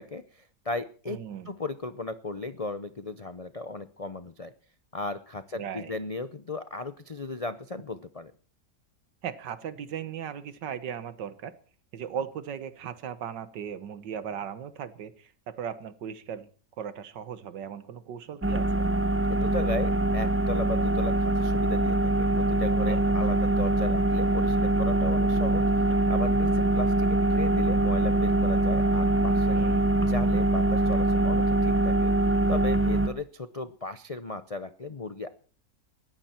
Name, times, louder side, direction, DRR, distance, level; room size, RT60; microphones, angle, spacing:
voice 1, 0.0-1.2 1.5-4.5 4.9-8.3 19.3-29.6 29.9-32.1 32.5-35.3, left 3 dB, 65° left, 12 dB, 0.3 m, -36 dB
voice 2, 1.1-1.5 5.5-5.9 9.2-11.5 11.9-16.5 16.8-18.7 22.9-23.2 29.5-29.9, right 8 dB, 85° right, 13 dB, 1.9 m, -37 dB
sound 1, 18.4-33.1, right 2 dB, 10° right, 0.9 m, -24 dB
19.5 x 14.5 x 4.4 m, 0.41 s
omnidirectional pair, 1.9 m